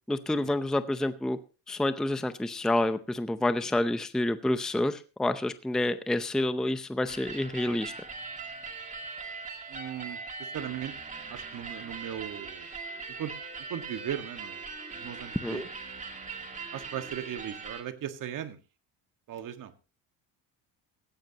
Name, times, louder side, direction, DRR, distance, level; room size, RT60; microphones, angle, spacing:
voice 1, 0.1-1.4 1.7-7.9 15.4-15.7, left 1 dB, ahead, 11 dB, 0.6 m, -28 dB
sound 1, 7.1-17.8, right 4 dB, 20° right, 2.3 m, -41 dB
voice 2, 9.7-10.9 11.3-12.7 13.2-13.3 13.7-15.6 16.7-18.6 19.3-19.7, right 10 dB, 50° right, 8 dB, 1.7 m, -38 dB
17.5 x 14.5 x 2.9 m, 0.32 s
cardioid pair, 150°, 41 cm